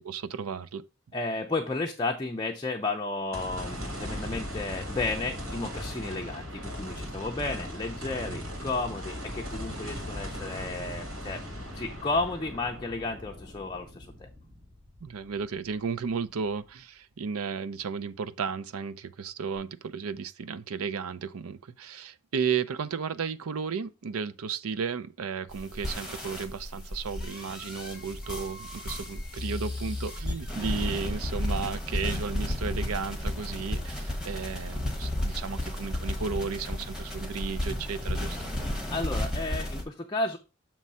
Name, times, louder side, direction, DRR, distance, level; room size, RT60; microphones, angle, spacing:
voice 1, 0.0-0.8 9.7-9.9 15.0-38.4, right 6 dB, 90° right, 0.5 m, -34 dB
voice 2, 1.1-11.4 11.7-14.3 38.9-40.4, left 3 dB, 20° left, 0.5 m, -33 dB
sound 1, 3.3-15.7 16.1-16.2 19.6-19.7, equal, 75° right, 2.7 m, -38 dB
sound 2, 25.5-39.8, left 1 dB, 5° right, 1.2 m, -33 dB
7.2 x 3.1 x 5.4 m
head